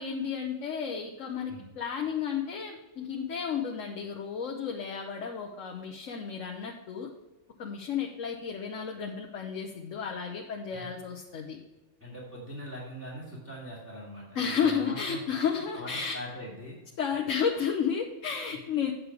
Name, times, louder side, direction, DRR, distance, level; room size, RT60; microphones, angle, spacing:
voice 1, 0.0-7.1 7.6-11.6 14.3-16.2 17.0-18.9, left 7 dB, 75° left, 2 dB, 1.2 m, -32 dB
voice 2, 12.0-15.2 15.5-16.8, equal, 10° right, -9 dB, 2.6 m, -42 dB
8.8 x 6.6 x 4.8 m, 1.1 s
omnidirectional pair, 1.3 m